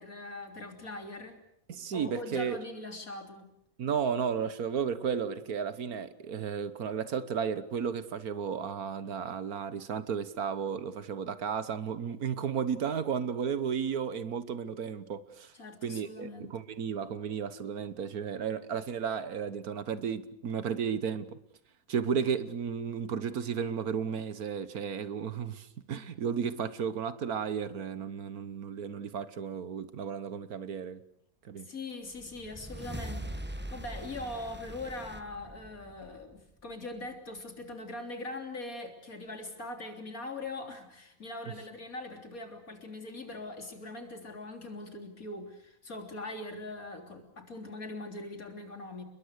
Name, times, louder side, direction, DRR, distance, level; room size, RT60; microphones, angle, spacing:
voice 1, 0.0-1.4 1.9-3.5 15.5-16.5 31.6-49.0, left 2 dB, 60° left, 3.9 m, -41 dB
voice 2, 1.7-2.6 3.8-15.5 15.8-21.4 21.9-31.0 31.4-31.7, right 7 dB, 70° right, 1.6 m, -33 dB
sound 1, 32.1-36.7, right 1 dB, 10° right, 1.0 m, -42 dB
30.0 x 21.5 x 6.6 m
omnidirectional pair, 1.7 m